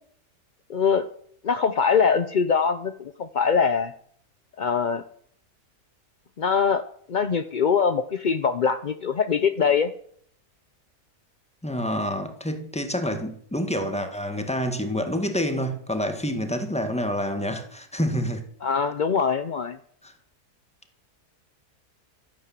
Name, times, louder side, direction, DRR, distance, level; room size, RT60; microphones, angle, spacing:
voice 1, 0.7-1.1 1.4-3.9 4.6-5.0 6.4-6.8 7.1-9.9 18.6-19.8, left 6 dB, 60° left, 0.5 m, -23 dB
voice 2, 11.6-18.4 20.0-20.1, equal, 5° left, 1.6 m, -28 dB
13.0 x 9.9 x 7.4 m
omnidirectional pair, 1.7 m